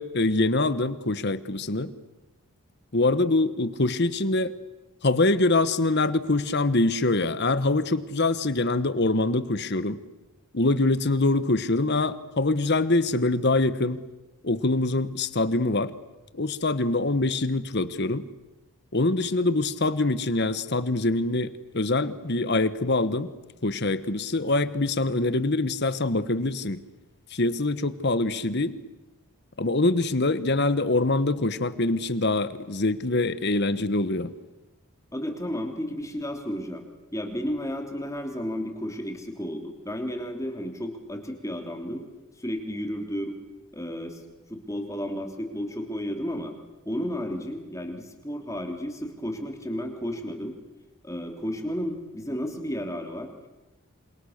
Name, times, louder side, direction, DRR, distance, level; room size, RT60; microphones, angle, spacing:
voice 1, 0.0-1.9 2.9-4.5 5.0-10.0 10.5-14.0 14.4-15.9 16.3-18.2 18.9-23.3 23.6-26.8 27.3-28.7 29.6-34.3, left 2 dB, 50° left, 14 dB, 1.3 m, -24 dB
voice 2, 35.1-42.0 42.4-43.3 43.7-44.2 44.5-46.5 46.8-50.5 51.0-53.3, equal, 15° left, 4 dB, 3.3 m, -32 dB
28.0 x 27.0 x 6.7 m, 1.1 s
head